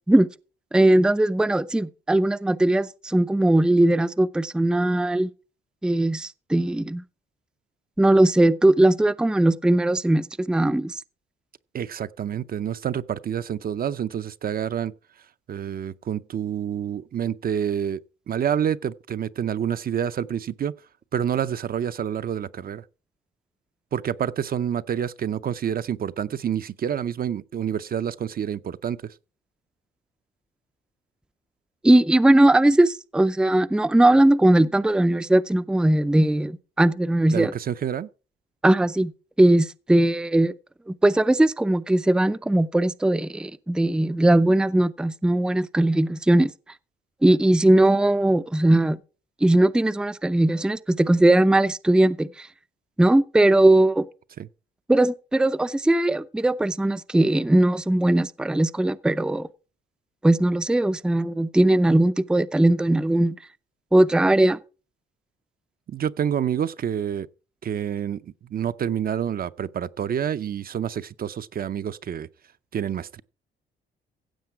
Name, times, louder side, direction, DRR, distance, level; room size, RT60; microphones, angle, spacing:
voice 1, 0.7-5.3 5.8-7.0 8.0-11.0 31.8-37.5 38.6-39.1 39.4-40.5 40.9-46.5 47.2-49.0 49.4-52.5 53.0-54.1 54.9-59.5 60.2-63.4 63.9-64.6, right 1 dB, 5° right, 0.5 m, -19 dB
voice 2, 11.7-14.9 15.5-18.0 18.3-20.7 21.1-22.8 23.9-29.1 37.3-38.1 54.4-54.5 65.9-67.3 67.6-72.3 72.7-73.2, right 9 dB, 50° right, 0.6 m, -28 dB
15.5 x 7.4 x 4.7 m
cardioid pair, 90°, 20 cm